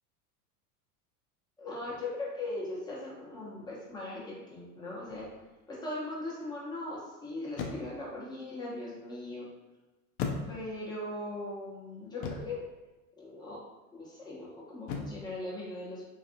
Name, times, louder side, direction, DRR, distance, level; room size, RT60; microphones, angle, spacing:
voice 1, 1.6-5.3 5.7-9.5 10.5-12.7 13.2-13.6 13.9-16.0, left 2 dB, 10° left, -6 dB, 0.9 m, -39 dB
sound 1, 5.1-5.4 7.5-8.1 10.2-10.9 12.2-12.7 14.9-15.3, left 5 dB, 45° left, 0.5 m, -37 dB
2.5 x 2.5 x 2.6 m, 1.1 s
hypercardioid pair, 90°, 46 cm